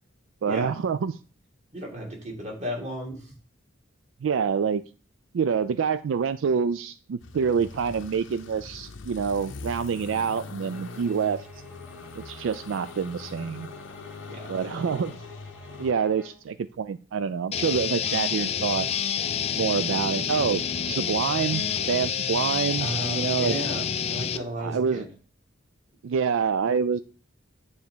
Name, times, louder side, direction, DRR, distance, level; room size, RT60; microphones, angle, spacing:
voice 1, 0.4-1.1 4.2-4.8 5.3-11.5 12.2-13.7 14.5-15.1 15.8-18.9 19.6-23.8 24.6-25.0 26.0-27.0, right 6 dB, 75° right, 13 dB, 0.4 m, -27 dB
voice 2, 1.7-3.3 14.3-14.5 22.8-25.1, right 1 dB, 35° right, 0 dB, 2.4 m, -34 dB
sound 1, 7.2-15.9, left 3 dB, 70° left, 0.6 m, -42 dB
sound 2, 10.7-16.5, left 3 dB, 10° right, 1.5 m, -48 dB
sound 3, 17.5-24.4, left 8 dB, 30° left, 0.4 m, -28 dB
9.5 x 3.5 x 6.7 m, 0.39 s
head